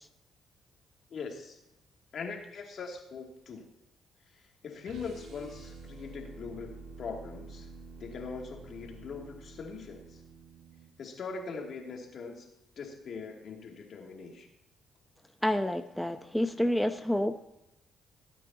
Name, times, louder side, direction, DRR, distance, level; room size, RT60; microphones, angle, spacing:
voice 1, 1.1-1.6 2.1-3.7 4.6-7.7 8.0-10.2 11.0-12.5 12.8-14.5, left 5 dB, 60° left, 1 dB, 2.7 m, -41 dB
sound 1, 4.8-10.9, right 3 dB, 75° right, 2.3 m, -49 dB
voice 2, 15.4-17.5, left 1 dB, 5° left, 6 dB, 0.7 m, -29 dB
17.5 x 9.2 x 2.9 m, 0.86 s
cardioid pair, 90°, 0 cm